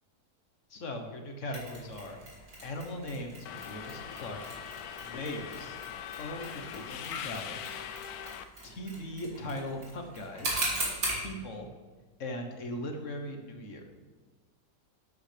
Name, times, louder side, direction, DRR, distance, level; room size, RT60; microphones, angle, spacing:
voice 1, 0.7-2.2 2.6-4.6 5.0-5.8 6.2-7.6 8.6-10.7 11.2-11.7 12.2-13.8, left 1 dB, 50° left, 4 dB, 1.4 m, -39 dB
Mechanisms, 1.5-11.3, right 1 dB, 55° right, 3.1 m, -39 dB
Subway metro underground, 3.5-8.4, left 8 dB, 70° left, 1.0 m, -41 dB
12.0 x 8.7 x 3.4 m, 1.4 s
omnidirectional pair, 1.8 m